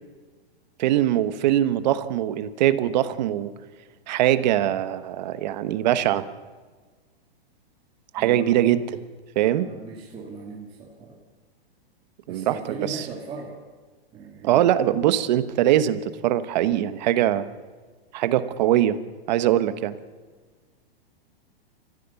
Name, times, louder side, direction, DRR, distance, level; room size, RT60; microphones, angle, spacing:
voice 1, 0.8-3.5 4.1-6.2 8.1-8.9 9.3-9.7 12.3-13.1 14.4-17.5 18.1-19.0 19.3-20.0, right 12 dB, 45° right, 13 dB, 1.1 m, -22 dB
voice 2, 8.2-8.6 9.4-11.2 12.3-13.5 14.1-14.7, right 4 dB, 15° right, -3 dB, 2.2 m, -38 dB
28.5 x 15.0 x 7.0 m, 1.4 s
hypercardioid pair, 160°, 30 cm